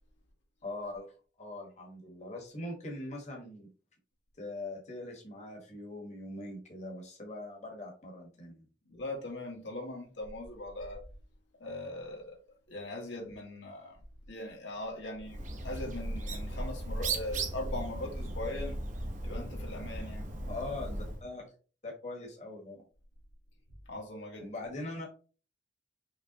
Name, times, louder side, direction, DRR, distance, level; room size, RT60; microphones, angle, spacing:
voice 1, 0.6-1.1 1.4-3.7 4.4-8.6 20.5-21.5 21.8-22.8 24.4-25.1, left 2 dB, 40° left, 1.4 m, -41 dB
voice 2, 8.9-11.0 11.6-12.4 12.7-14.0 14.3-18.8 19.2-20.2 23.9-24.5, left 1 dB, 85° left, 1.8 m, -40 dB
Bird, 15.2-21.2, right 2 dB, 45° right, 1.0 m, -37 dB
5.6 x 3.3 x 2.9 m
head